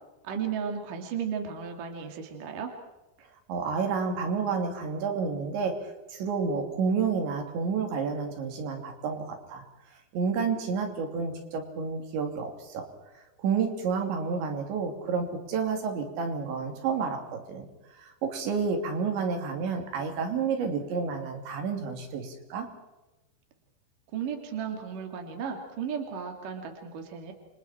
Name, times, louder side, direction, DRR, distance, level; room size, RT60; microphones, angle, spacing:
voice 1, 0.2-2.7 24.1-27.3, right 7 dB, 50° right, 3 dB, 3.8 m, -34 dB
voice 2, 3.5-5.7 6.1-9.6 10.1-12.8 13.4-17.7 18.0-22.7, right 5 dB, 80° right, 4 dB, 5.4 m, -30 dB
30.0 x 26.0 x 4.5 m, 1.1 s
omnidirectional pair, 5.1 m